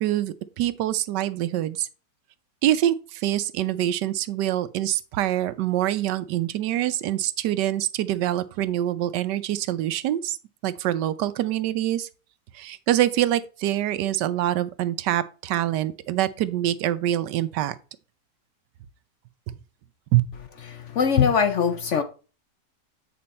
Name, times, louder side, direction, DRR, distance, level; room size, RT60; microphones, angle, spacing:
voice 1, 0.0-1.9 2.6-10.4 10.6-12.1 12.5-17.7 19.5-19.6 20.1-20.2, right 13 dB, 90° right, 1.3 m, -25 dB
voice 2, 20.7-22.0, left 7 dB, 60° left, 0.8 m, -21 dB
8.6 x 5.1 x 4.2 m
omnidirectional pair, 1.8 m